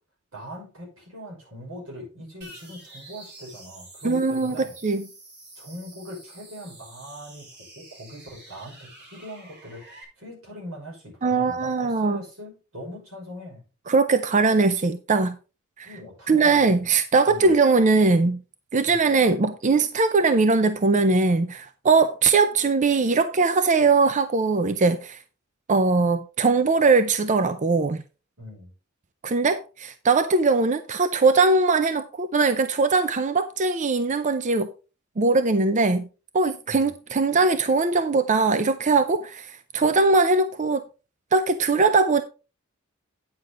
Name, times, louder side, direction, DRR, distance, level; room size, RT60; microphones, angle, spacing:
voice 1, 0.3-4.7 5.6-7.5 7.8-13.6 15.8-16.6 17.3-17.5 18.8-19.1 28.4-28.7 36.7-36.9, equal, 85° right, 5.9 m, -41 dB
sound 1, 2.4-10.0, right 2 dB, 55° right, 3.5 m, -48 dB
voice 2, 4.0-5.1 11.2-12.2 13.9-15.4 15.8-15.9 16.3-18.4 18.7-25.2 25.7-28.0 29.2-34.7 35.2-36.1 36.3-40.8 41.3-42.2, right 3 dB, 35° right, 0.5 m, -21 dB
9.7 x 6.7 x 3.8 m
head